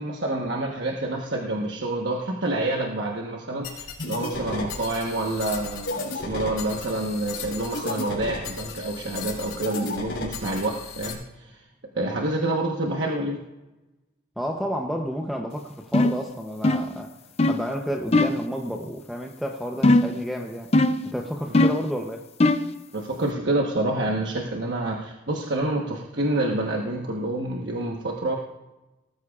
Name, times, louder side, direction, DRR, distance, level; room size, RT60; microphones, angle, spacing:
voice 1, 0.0-11.6 11.9-13.4 22.9-28.4, right 2 dB, 60° right, 0 dB, 1.2 m, -28 dB
sound 1, 3.6-11.1, left 3 dB, 70° left, 3.5 m, -34 dB
voice 2, 14.4-17.2 17.5-20.7 21.1-22.2, equal, ahead, 1 dB, 0.7 m, -31 dB
sound 2, 15.9-16.2 16.6-17.0 17.4-17.6 18.1-18.4 19.8-20.2 20.7-21.1 21.5-21.9 22.4-22.7, left 2 dB, 30° left, 0.5 m, -19 dB
19.0 x 13.5 x 2.4 m, 1.0 s
head